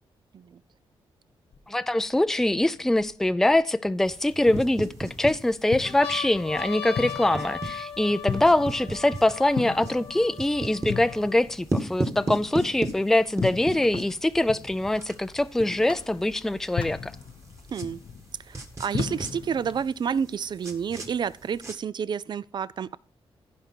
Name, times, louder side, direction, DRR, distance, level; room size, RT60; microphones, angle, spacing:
sound 1, 1.5-1.6 2.3-3.5 4.3-5.0 5.5-5.6 5.8-11.5 12.2-12.3 12.4-13.4 14.4-15.4, left 6 dB, 80° left, 1.5 m, -38 dB
voice 1, 1.7-17.1, left 1 dB, 5° left, 0.4 m, -23 dB
sound 2, 4.0-19.9, left 7 dB, 65° left, 0.8 m, -38 dB
sound 3, 4.1-21.7, right 2 dB, 30° right, 1.9 m, -37 dB
voice 2, 17.7-18.0 18.5-23.0, right 7 dB, 50° right, 0.4 m, -30 dB
15.5 x 5.2 x 4.5 m
cardioid pair, 95°, 10 cm